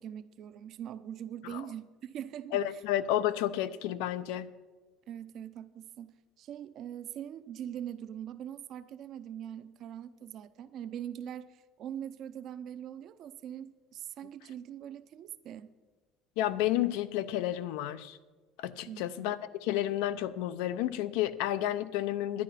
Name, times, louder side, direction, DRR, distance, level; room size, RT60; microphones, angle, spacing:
voice 1, 0.0-2.8 5.1-6.1 6.4-15.7 18.9-19.4, right 10 dB, 50° right, 11 dB, 0.6 m, -42 dB
voice 2, 2.5-4.5 16.4-18.2 18.6-19.4 19.6-22.4, left 13 dB, 85° left, 14 dB, 0.6 m, -31 dB
11.0 x 10.0 x 5.8 m, 1.3 s
cardioid pair, 130°, 0 cm